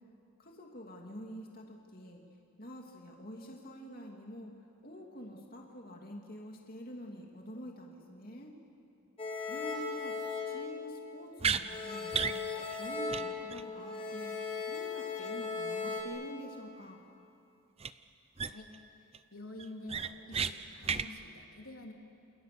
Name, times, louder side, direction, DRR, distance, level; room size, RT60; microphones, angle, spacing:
voice 1, 0.4-2.2 2.6-4.5 4.8-8.5 9.5-10.1 10.5-12.4 12.8-14.3 14.7-17.0, equal, 45° left, 0 dB, 2.6 m, -47 dB
sound 1, 9.2-11.3 11.7-16.0, left 4 dB, 25° left, 3.9 m, -38 dB
sound 2, 11.4-11.6 12.1-12.4 12.7-12.8 13.1-13.2 13.5-13.6 17.8-17.9 18.4-18.8 19.1-19.2 19.6-20.5 20.8-21.1, right 6 dB, 30° right, 0.6 m, -32 dB
voice 2, 19.3-21.9, left 1 dB, 85° left, 1 dB, 3.3 m, -48 dB
29.0 x 29.0 x 6.9 m, 2.7 s
head